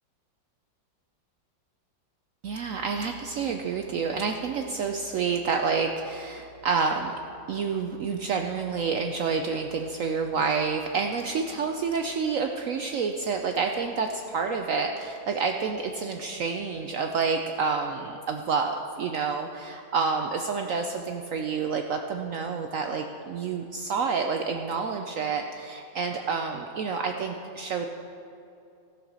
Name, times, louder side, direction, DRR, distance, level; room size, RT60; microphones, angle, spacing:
voice 1, 2.4-7.1 7.5-27.9, right 5 dB, 80° right, 4 dB, 0.7 m, -29 dB
15.0 x 6.5 x 6.2 m, 2.7 s
omnidirectional pair, 2.0 m